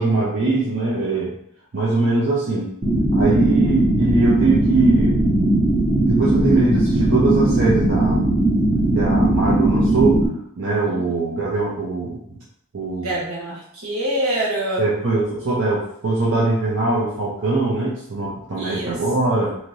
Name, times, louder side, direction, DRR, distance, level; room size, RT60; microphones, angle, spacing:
voice 1, 0.0-1.3 1.7-2.7 3.1-5.2 6.0-8.3 8.9-10.2 10.6-12.2 12.7-13.1 14.8-19.6, right 2 dB, 60° right, -6 dB, 0.6 m, -21 dB
sound 1, 2.8-10.3, right 2 dB, 25° right, 0.6 m, -18 dB
voice 2, 13.0-14.8 18.5-19.0, right 1 dB, 80° right, -4 dB, 1.2 m, -25 dB
3.1 x 2.7 x 2.7 m, 0.69 s
head